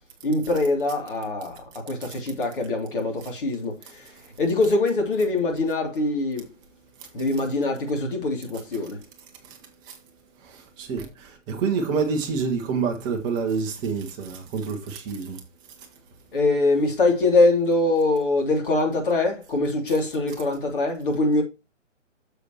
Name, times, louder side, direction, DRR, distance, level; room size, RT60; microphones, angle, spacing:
voice 1, 0.2-1.5 1.9-2.0 2.2-3.1 3.4-3.7 4.4-6.4 7.1-8.9 16.3-21.4, left 2 dB, 45° left, 3.0 m, -23 dB
voice 2, 9.4-10.0 10.4-15.4 15.8-15.9, right 5 dB, 10° right, 1.0 m, -28 dB
9.7 x 7.0 x 3.0 m
figure-of-eight pair, 135°, 38 cm